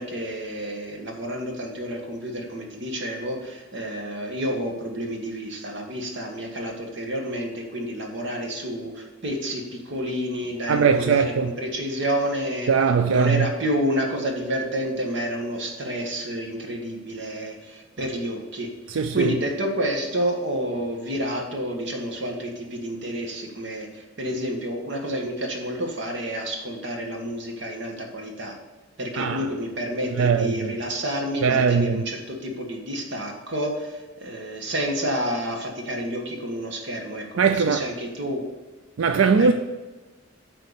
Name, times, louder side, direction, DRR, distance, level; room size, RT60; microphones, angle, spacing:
voice 1, 0.0-12.7 13.0-28.5 29.0-38.4 39.4-39.5, equal, 60° right, 1.6 m, -29 dB
voice 2, 10.7-11.5 12.7-13.5 18.9-19.3 29.2-29.5 30.2-30.8 31.4-32.0 37.4-37.9 39.0-39.5, right 5 dB, 80° right, 0.4 m, -20 dB
8.2 x 4.4 x 6.6 m
head